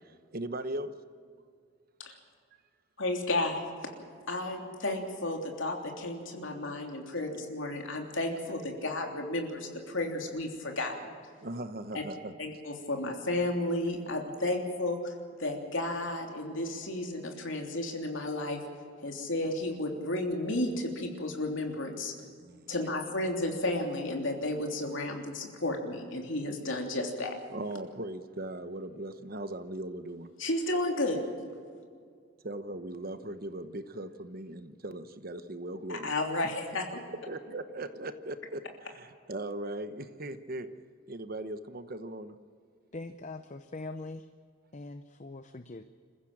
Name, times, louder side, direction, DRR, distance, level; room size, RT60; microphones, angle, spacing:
voice 1, 0.3-0.9 11.4-12.6 22.4-22.7 27.5-30.3 32.4-36.1 37.3-40.7 41.1-42.4, right 1 dB, 45° right, 11 dB, 1.0 m, -39 dB
voice 2, 3.0-3.6 4.3-11.1 11.9-12.0 12.4-15.1 15.4-18.6 19.0-22.1 22.7-27.3 30.4-31.2 35.9-36.8, left 2 dB, 60° left, 2 dB, 3.2 m, -32 dB
voice 3, 42.9-44.3 44.7-45.8, left 2 dB, 35° left, 9 dB, 0.7 m, -42 dB
27.5 x 15.0 x 7.3 m, 2.1 s
head